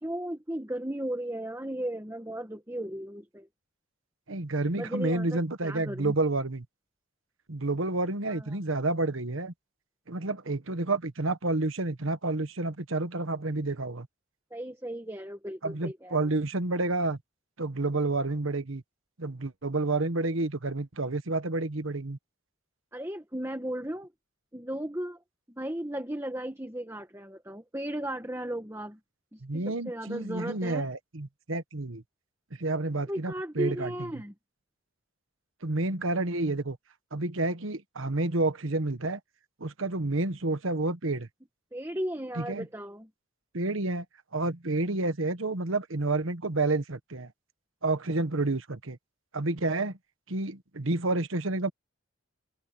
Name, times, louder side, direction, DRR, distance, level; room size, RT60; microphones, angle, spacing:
voice 1, 0.0-3.5 4.7-6.1 8.3-8.6 14.5-16.3 22.9-24.1 24.5-25.2 25.5-29.0 29.3-30.9 33.1-34.3 41.7-43.1, right 1 dB, 10° right, 1.7 m, -36 dB
voice 2, 4.3-6.6 7.5-9.5 10.1-14.1 15.6-17.2 17.6-18.8 19.2-22.2 29.4-32.0 32.6-33.9 35.6-36.8 37.1-39.2 39.6-41.3 42.4-42.7 43.5-44.0 44.3-47.3 47.8-49.0 49.3-50.0 50.3-51.7, right 2 dB, 70° right, 1.3 m, -29 dB
head